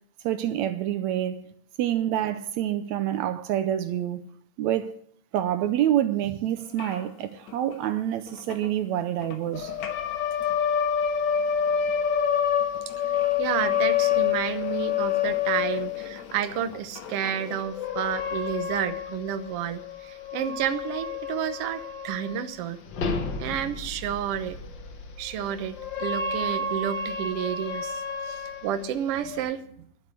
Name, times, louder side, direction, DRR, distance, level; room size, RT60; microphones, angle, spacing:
voice 1, 0.2-1.4 1.8-4.2 4.6-4.9 5.3-9.7, right 11 dB, 80° right, 2.0 m, -27 dB
sound 1, 6.6-17.6, left 6 dB, 70° left, 2.4 m, -45 dB
sound 2, 9.5-16.2 17.4-22.5 22.9-29.4, left 7 dB, 50° left, 1.6 m, -29 dB
voice 2, 13.0-22.8 23.4-24.6 25.2-29.6, right 10 dB, 65° right, 1.8 m, -31 dB
12.0 x 7.9 x 9.6 m
omnidirectional pair, 3.4 m